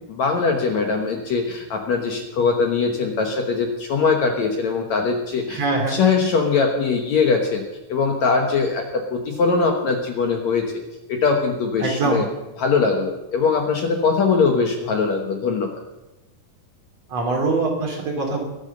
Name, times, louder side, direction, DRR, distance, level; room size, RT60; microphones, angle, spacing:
voice 1, 0.1-5.6 5.9-7.6 7.9-10.7 11.1-12.2 12.6-15.7, left 4 dB, 60° left, 3 dB, 2.1 m, -21 dB
voice 2, 5.5-6.0 11.8-12.3 17.1-18.4, right 3 dB, 45° right, 1 dB, 3.5 m, -23 dB
22.0 x 8.0 x 6.7 m, 1.0 s
omnidirectional pair, 4.2 m